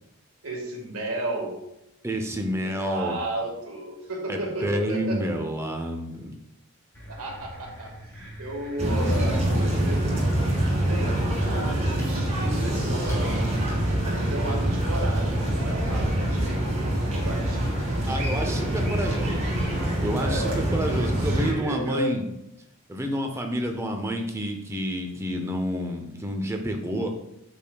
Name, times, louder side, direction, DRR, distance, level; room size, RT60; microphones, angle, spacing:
voice 1, 0.4-1.6 2.6-5.2 7.1-13.5 14.0-17.8 18.5-18.6 18.9-19.3 20.1-22.1, right 1 dB, 80° right, 1 dB, 1.6 m, -34 dB
voice 2, 2.0-3.2 4.3-6.3 18.1-19.4 20.0-22.3 22.9-27.1, equal, 10° right, 4 dB, 0.7 m, -29 dB
sound 1, 6.9-13.2, equal, 10° left, 2.8 m, -43 dB
sound 2, 8.8-21.5, right 1 dB, 30° right, 2.1 m, -25 dB
8.7 x 6.7 x 2.3 m, 0.85 s
head